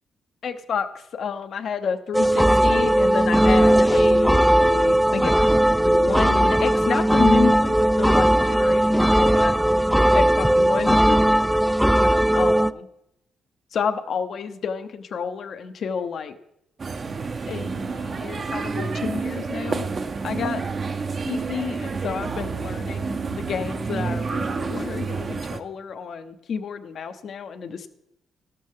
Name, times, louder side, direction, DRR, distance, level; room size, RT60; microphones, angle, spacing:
voice 1, 0.4-9.5 10.1-11.2 12.3-12.9 13.7-16.3 17.5-19.9 20.2-20.6 21.3-27.9, left 6 dB, 60° left, 9 dB, 0.9 m, -30 dB
sound 1, 2.1-12.7, right 1 dB, ahead, 0.3 m, -18 dB
sound 2, 16.8-25.6, right 4 dB, 40° right, 0.7 m, -29 dB
13.0 x 12.0 x 3.7 m, 0.82 s
cardioid pair, 85°, 0 cm